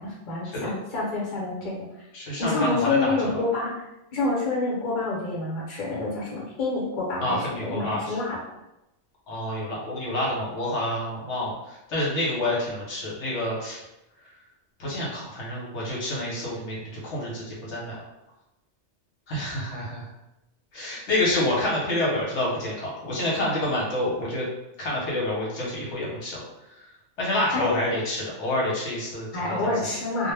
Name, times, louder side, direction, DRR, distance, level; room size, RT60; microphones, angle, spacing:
voice 1, 0.0-1.8 2.4-3.7 4.1-8.4 27.5-27.7 29.3-30.3, left 3 dB, 45° left, -4 dB, 0.9 m, -27 dB
voice 2, 2.1-3.4 7.2-8.2 9.3-13.8 14.8-18.0 19.3-20.1 20.7-24.5 24.8-26.4 27.2-29.7, left 1 dB, 75° left, -5 dB, 1.0 m, -28 dB
2.2 x 2.1 x 3.2 m, 0.92 s
omnidirectional pair, 1.2 m